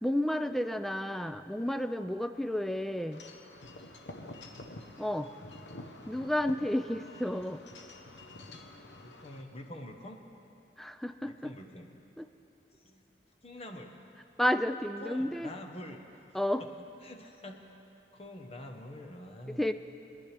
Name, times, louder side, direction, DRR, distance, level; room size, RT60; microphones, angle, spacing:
voice 1, 0.0-3.2 5.0-5.3 6.1-7.6 10.8-11.5 12.2-12.3 14.4-15.5 16.3-16.6 19.6-19.7, left 1 dB, ahead, 9 dB, 0.3 m, -31 dB
Wind chime / Wind, 3.1-9.4, left 2 dB, 75° left, 0.9 m, -48 dB
voice 2, 4.2-4.5 9.0-10.2 11.2-11.9 12.8-13.0 13.4-13.9 15.0-16.0 17.0-17.6 18.1-19.6, left 1 dB, 35° left, 4 dB, 1.0 m, -46 dB
23.5 x 10.5 x 3.4 m, 2.8 s
head